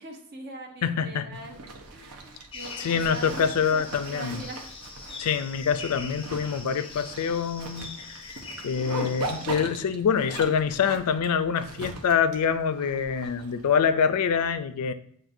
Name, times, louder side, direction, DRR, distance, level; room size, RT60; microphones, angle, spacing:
voice 1, 0.0-4.7, right 2 dB, 45° right, 2 dB, 0.8 m, -42 dB
voice 2, 0.8-1.2 2.8-4.4 5.2-8.3 8.6-14.9, left 6 dB, 80° left, 11 dB, 0.4 m, -25 dB
Zipper (clothing), 1.3-13.8, right 3 dB, 80° right, 0.8 m, -40 dB
sound 1, 2.5-9.5, left 4 dB, 25° left, 0.5 m, -43 dB
7.5 x 2.6 x 2.6 m, 0.64 s
head